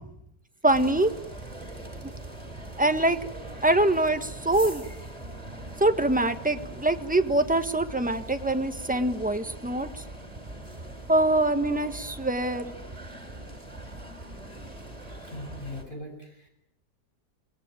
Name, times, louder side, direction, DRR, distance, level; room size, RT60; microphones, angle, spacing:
voice 1, 0.6-1.1 2.8-3.2 3.6-4.8 5.8-9.9 11.1-12.7, right 1 dB, 5° right, 8 dB, 1.4 m, -24 dB
sound 1, 0.7-15.8, right 1 dB, 20° right, 5.0 m, -41 dB
voice 2, 15.2-16.5, left 1 dB, 30° left, 2 dB, 7.4 m, -40 dB
27.0 x 21.0 x 9.2 m, 0.80 s
omnidirectional pair, 1.8 m